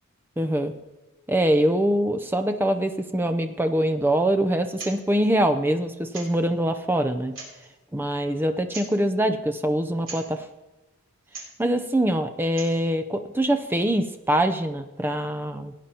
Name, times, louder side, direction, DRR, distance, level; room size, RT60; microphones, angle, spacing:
voice 1, 0.4-0.7 1.3-7.3 7.9-10.5 11.6-15.7, right 1 dB, 10° right, 7 dB, 0.5 m, -24 dB
sound 1, 4.7-5.0 5.2-5.3 6.1-6.5 7.2-7.7 8.7-9.0 10.0-10.3 11.2-11.6 12.4-12.8, right 3 dB, 60° right, 3.2 m, -39 dB
17.5 x 9.1 x 2.9 m, 1.0 s
head